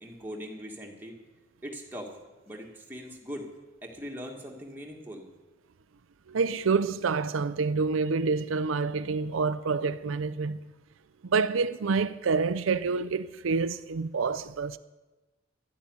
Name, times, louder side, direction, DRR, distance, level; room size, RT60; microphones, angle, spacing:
voice 1, 0.0-1.2 1.6-2.1 2.5-3.5 3.8-5.3, equal, 10° right, 1.8 m, -40 dB
voice 2, 6.3-10.6 11.2-14.8, right 4 dB, 80° right, 0.5 m, -27 dB
13.0 x 8.5 x 9.5 m
head